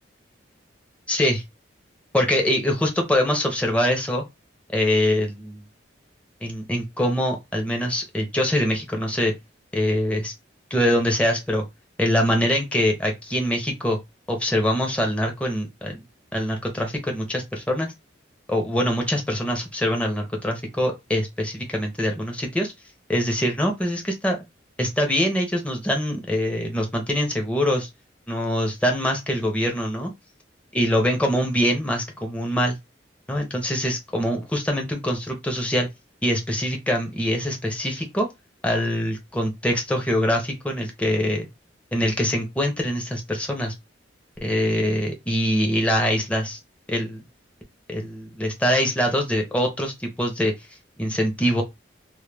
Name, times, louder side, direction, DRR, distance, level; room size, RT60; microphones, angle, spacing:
voice 1, 1.1-1.4 2.1-4.2 4.7-5.6 6.4-9.3 9.7-10.3 10.7-11.6 12.0-14.0 14.3-16.0 16.3-17.9 18.5-22.7 23.1-24.4 24.8-27.9 28.3-30.1 30.7-32.8 33.3-35.9 36.2-38.3 38.6-41.5 41.9-43.7 44.4-46.6 46.9-47.2 47.9-50.5 51.0-51.6, equal, 5° left, 0.6 m, -24 dB
2.2 x 2.2 x 3.2 m
head